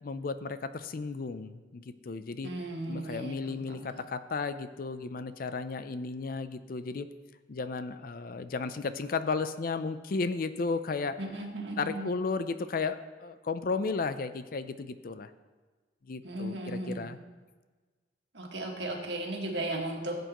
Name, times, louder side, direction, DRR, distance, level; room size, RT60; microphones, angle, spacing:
voice 1, 0.0-2.5 2.9-7.1 7.5-11.2 11.8-15.3 16.0-17.2, left 4 dB, 50° left, 12 dB, 0.4 m, -34 dB
voice 2, 2.4-3.9 11.2-12.1 16.2-17.1 18.3-20.2, right 1 dB, 70° right, 0 dB, 1.7 m, -36 dB
15.5 x 7.9 x 3.0 m, 1.3 s
head